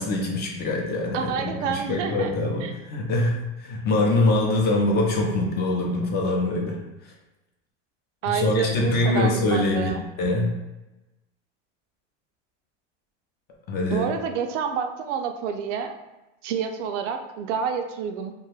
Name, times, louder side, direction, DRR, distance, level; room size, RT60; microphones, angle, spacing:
voice 1, 0.0-6.8 8.3-9.9 10.2-10.5 13.7-14.1, left 2 dB, 30° left, -1 dB, 0.5 m, -24 dB
voice 2, 1.1-2.3 2.6-2.7 8.2-10.1 13.9-15.9 16.4-18.3, right 7 dB, 90° right, 6 dB, 0.5 m, -28 dB
2.6 x 2.2 x 3.2 m, 1.0 s
supercardioid pair, 135°, 35 cm